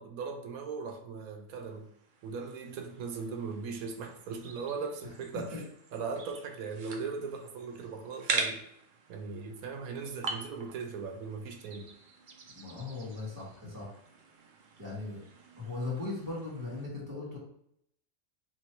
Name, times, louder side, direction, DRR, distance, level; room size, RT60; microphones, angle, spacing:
voice 1, 0.0-1.9 2.2-5.6 5.9-8.6 9.1-11.9 13.6-13.7, right 5 dB, 90° right, 5 dB, 1.1 m, -39 dB
sound 1, 1.7-16.9, right 4 dB, 65° right, 0.5 m, -43 dB
voice 2, 12.5-13.9 14.8-15.2 15.6-17.4, left 3 dB, 15° right, -6 dB, 1.5 m, -38 dB
3.1 x 3.0 x 4.4 m, 0.71 s
omnidirectional pair, 1.5 m